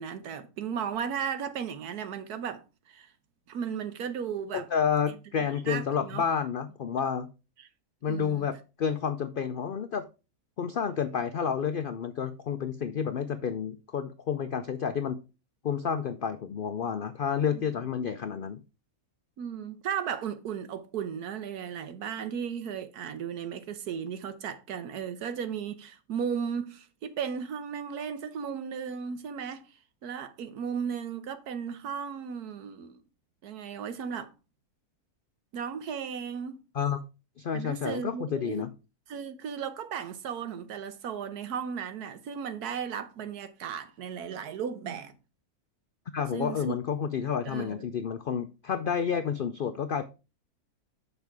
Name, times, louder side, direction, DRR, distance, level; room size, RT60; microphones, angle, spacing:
voice 1, 0.0-3.1 3.5-4.7 5.1-5.2 5.5-6.2 7.6-7.7 8.1-8.5 17.5-17.6 19.4-29.8 30.0-33.0 33.4-34.3 35.5-36.6 37.5-38.7 39.1-45.1 46.3-46.8 47.4-47.9, right 7 dB, 90° right, 1.4 m, -35 dB
voice 2, 4.5-7.3 8.0-10.0 10.6-15.2 15.6-18.6 36.7-37.0 37.4-38.7 46.1-50.0, left 7 dB, 90° left, 0.4 m, -30 dB
6.9 x 5.4 x 4.7 m
omnidirectional pair, 1.6 m